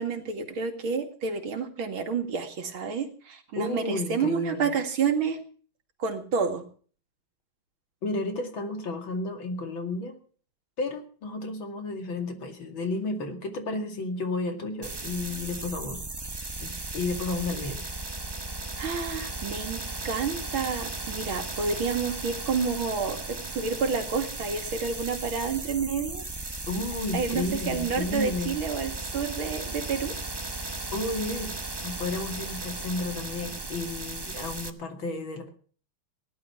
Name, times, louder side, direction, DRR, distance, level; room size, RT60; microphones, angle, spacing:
voice 1, 0.0-5.4 6.0-6.6 18.8-26.2 27.1-30.1, right 5 dB, 80° right, 6 dB, 3.0 m, -29 dB
voice 2, 3.6-4.7 8.0-10.2 10.8-16.0 16.6-17.8 26.7-28.5 30.9-31.5 31.8-35.5, left 2 dB, 70° left, 6 dB, 3.1 m, -32 dB
sound 1, 14.8-34.7, right 2 dB, 25° right, 0.5 m, -36 dB
18.0 x 11.5 x 5.9 m, 0.43 s
omnidirectional pair, 2.3 m